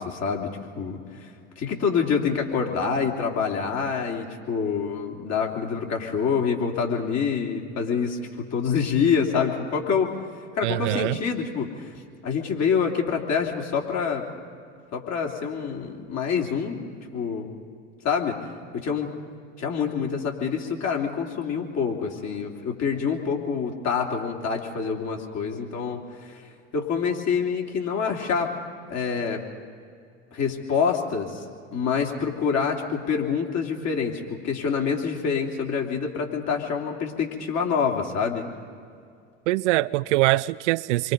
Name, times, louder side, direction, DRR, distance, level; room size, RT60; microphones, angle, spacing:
voice 1, 0.0-10.1 10.6-12.0 12.2-14.2 14.9-17.5 18.0-18.4 18.7-19.1 19.6-26.4 26.7-28.6 28.9-29.4 30.3-31.4 31.7-38.5, left 6 dB, 45° left, 3.2 m, -26 dB
voice 2, 10.6-11.2 39.5-41.1, right 18 dB, 65° right, 0.5 m, -23 dB
28.0 x 23.5 x 5.3 m
hypercardioid pair, 75°, 37 cm